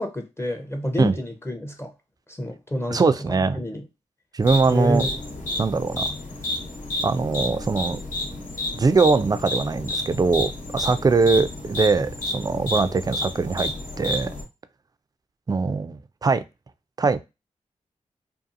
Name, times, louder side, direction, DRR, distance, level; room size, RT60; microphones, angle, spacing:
voice 1, 0.0-1.9 2.3-3.8 4.7-5.1, left 1 dB, 20° left, 0.6 m, -29 dB
voice 2, 2.9-3.6 4.3-5.1 5.6-6.1 7.0-8.0 8.8-14.3 15.5-16.4 17.0-17.2, right 4 dB, 25° right, 0.3 m, -22 dB
sound 1, 4.4-14.4, left 1 dB, 65° left, 1.0 m, -30 dB
2.7 x 2.4 x 2.5 m
cardioid pair, 45°, 14 cm